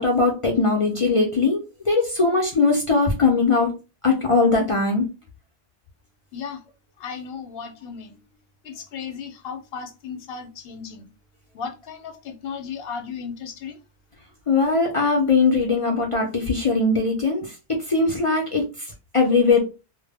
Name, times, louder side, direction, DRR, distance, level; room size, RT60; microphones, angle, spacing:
voice 1, 0.0-3.7 4.0-5.0 14.5-18.6 19.1-19.6, left 3 dB, 50° left, 0.4 m, -20 dB
voice 2, 7.0-8.2 8.6-11.1 11.5-13.8, left 6 dB, 70° left, 0.8 m, -35 dB
2.0 x 2.0 x 3.3 m
omnidirectional pair, 1.1 m